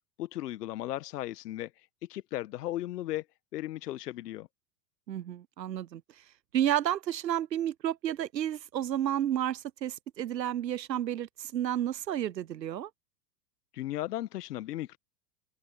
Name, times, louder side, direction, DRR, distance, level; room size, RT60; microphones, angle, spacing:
voice 1, 0.2-3.2 3.5-4.5 13.7-15.0, left 14 dB, 70° left, 1.3 m, -36 dB
voice 2, 5.1-6.0 6.5-12.9, right 11 dB, 90° right, 0.7 m, -31 dB
open air
hypercardioid pair, 95°, 49 cm